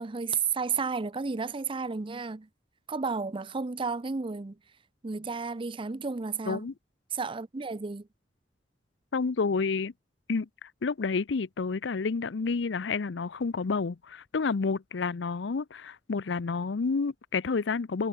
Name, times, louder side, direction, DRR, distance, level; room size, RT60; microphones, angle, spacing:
voice 1, 0.0-2.5 2.9-4.6 5.0-6.7 7.1-8.1, right 5 dB, 30° right, 0.5 m, -32 dB
voice 2, 9.1-9.9 10.3-18.1, left 4 dB, 70° left, 0.6 m, -30 dB
head